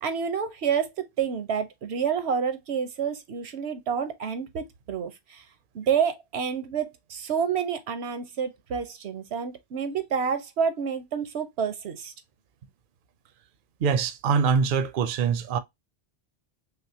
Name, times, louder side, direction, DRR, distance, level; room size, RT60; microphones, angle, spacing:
voice 1, 0.0-5.4 5.7-12.1, right 7 dB, 90° right, 1.1 m, -29 dB
voice 2, 13.8-15.6, right 6 dB, 60° right, 0.7 m, -24 dB
5.6 x 2.0 x 2.7 m
omnidirectional pair, 1.1 m